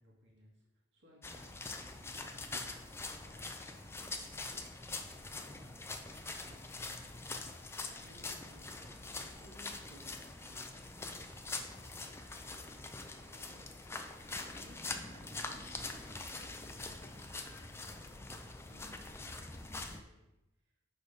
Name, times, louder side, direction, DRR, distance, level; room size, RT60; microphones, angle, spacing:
voice 1, 0.0-8.9 9.4-14.0 14.3-14.8 15.1-20.3 20.6-20.8, equal, 60° right, -2 dB, 2.1 m, -64 dB
sound 1, 1.2-20.0, left 3 dB, 10° left, 0.4 m, -44 dB
6.7 x 5.0 x 5.0 m, 0.94 s
head